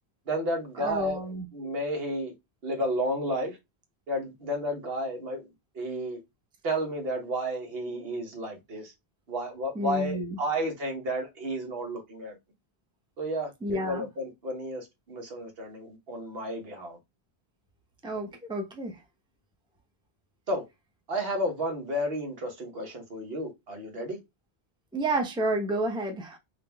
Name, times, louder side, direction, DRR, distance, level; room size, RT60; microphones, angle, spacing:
voice 1, 0.3-1.2 1.5-2.3 2.6-3.6 4.1-5.5 5.7-6.2 6.6-8.9 9.3-12.3 13.2-17.0 20.5-20.6 21.1-24.2, equal, 70° right, 1.3 m, -32 dB
voice 2, 0.8-1.5 9.7-10.4 13.6-14.1 18.0-19.0 24.9-26.4, right 1 dB, 5° right, 0.7 m, -30 dB
3.8 x 2.6 x 3.4 m
omnidirectional pair, 1.1 m